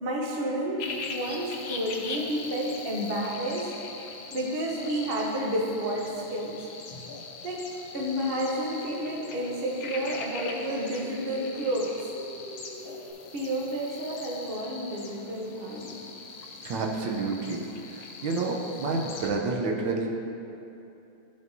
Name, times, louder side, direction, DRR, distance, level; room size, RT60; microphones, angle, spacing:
voice 1, 0.0-3.7 4.3-6.6 7.4-12.0 13.3-15.9, equal, 50° right, -1 dB, 0.7 m, -30 dB
sound 1, 0.8-19.3, left 4 dB, 85° left, 1.6 m, -41 dB
sound 2, 8.1-13.1, equal, 20° right, 1.1 m, -46 dB
voice 2, 16.6-17.6 17.9-20.1, right 3 dB, 70° right, 0 dB, 1.4 m, -29 dB
13.0 x 5.4 x 2.7 m, 2.9 s
omnidirectional pair, 2.2 m